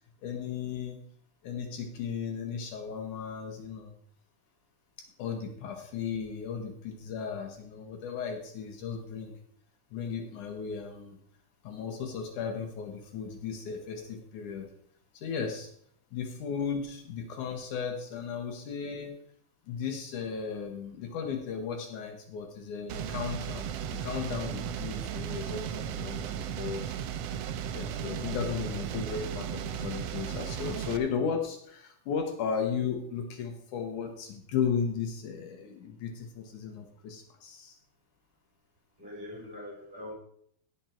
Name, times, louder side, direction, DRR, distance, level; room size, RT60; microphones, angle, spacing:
voice 1, 0.2-1.0 1.4-4.0 5.2-9.4 9.9-11.2 11.6-14.7 15.1-15.7 16.1-19.2 19.7-27.0 27.7-37.8, left 6 dB, 70° left, 4 dB, 2.5 m, -35 dB
death metal loop, 22.9-31.0, right 9 dB, 80° right, 1.4 m, -35 dB
voice 2, 39.0-40.1, left 1 dB, 15° right, -3 dB, 4.8 m, -42 dB
17.5 x 6.1 x 4.4 m, 0.66 s
omnidirectional pair, 3.7 m